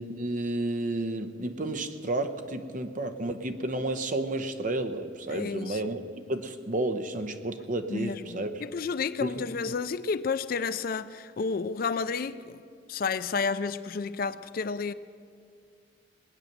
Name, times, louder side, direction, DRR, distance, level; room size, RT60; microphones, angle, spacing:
voice 1, 0.0-6.0 6.3-8.6 9.2-9.4, right 2 dB, 45° right, 0.8 m, -31 dB
voice 2, 5.3-5.8 7.9-12.6 12.9-14.9, left 5 dB, 50° left, 0.4 m, -31 dB
20.5 x 9.0 x 6.7 m
head